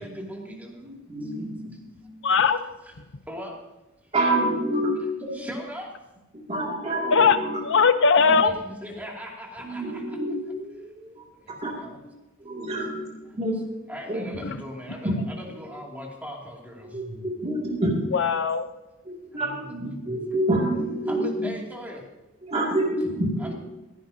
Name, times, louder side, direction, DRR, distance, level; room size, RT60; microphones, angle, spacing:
voice 1, 0.0-0.7 3.3-3.6 5.3-5.9 8.3-10.2 11.4-12.0 13.9-15.1 15.6-16.9 19.3-19.6 21.1-22.0, equal, 10° right, -1 dB, 2.6 m, -38 dB
voice 2, 0.8-1.7 4.1-5.5 6.3-7.6 9.6-11.7 12.4-13.6 14.1-14.4 15.0-15.6 16.8-18.0 19.1-21.5 22.4-23.5, right 1 dB, 30° right, -3 dB, 2.5 m, -28 dB
voice 3, 2.2-2.6 7.1-7.4 7.6-8.6 14.4-14.6 18.1-18.7, left 5 dB, 60° left, 10 dB, 0.8 m, -19 dB
16.0 x 15.5 x 2.8 m, 1.0 s
head